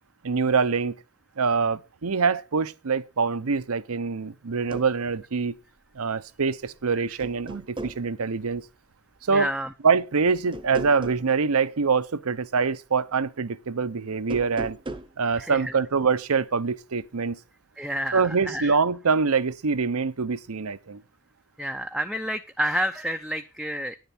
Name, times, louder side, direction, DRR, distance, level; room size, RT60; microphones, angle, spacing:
voice 1, 0.2-0.9 1.4-5.5 5.9-8.6 9.2-9.5 9.8-14.8 15.2-17.4 18.1-21.0, right 5 dB, 70° right, 0.7 m, -24 dB
sound 1, 4.5-4.9 6.5-6.8 7.2-8.0 10.5-11.3 14.2-15.1, right 2 dB, 20° right, 0.9 m, -36 dB
voice 2, 9.3-9.7 15.4-15.7 17.8-18.7 21.6-24.0, equal, ahead, 0.5 m, -29 dB
10.5 x 10.5 x 4.3 m
head